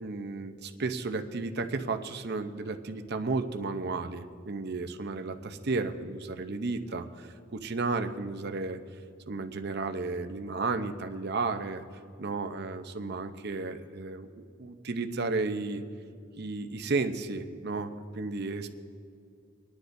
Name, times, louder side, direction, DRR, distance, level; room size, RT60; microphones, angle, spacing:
voice 1, 0.0-8.8 9.3-11.8 12.2-15.8 16.4-18.7, right 3 dB, 55° right, 7 dB, 0.7 m, -33 dB
24.5 x 10.0 x 2.7 m, 2.4 s
head